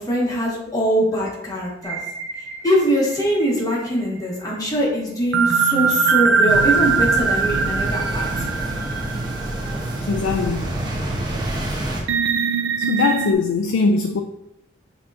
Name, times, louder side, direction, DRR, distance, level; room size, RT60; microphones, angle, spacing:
voice 1, 0.0-2.0 2.6-8.3, equal, 20° left, 1.1 m, -22 dB
sound 1, 1.8-3.8 5.3-10.2 10.6-10.7 12.1-13.3, right 5 dB, 90° right, 0.4 m, -22 dB
sound 2, 6.5-12.0, right 1 dB, 25° right, 0.7 m, -27 dB
voice 2, 10.1-10.7 12.9-14.2, left 4 dB, 85° left, 0.3 m, -20 dB
6.3 x 2.9 x 2.5 m
head